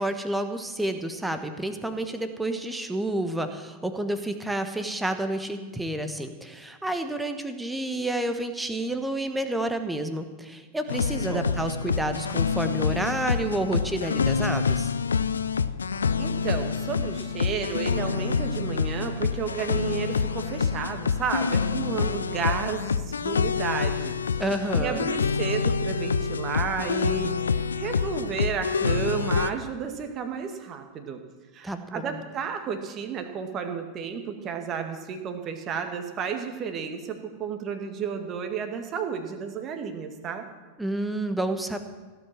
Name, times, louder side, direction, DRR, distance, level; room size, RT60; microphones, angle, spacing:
voice 1, 0.0-14.9 24.4-25.1 31.6-32.2 40.8-41.8, right 1 dB, 5° right, 7 dB, 1.3 m, -30 dB
sound 1, 10.9-29.5, left 5 dB, 70° left, 0.4 m, -27 dB
voice 2, 16.2-24.1 24.8-31.2 31.5-40.5, right 6 dB, 30° right, 6 dB, 1.9 m, -32 dB
16.0 x 7.9 x 7.5 m, 1.4 s
figure-of-eight pair, 90°, 0 cm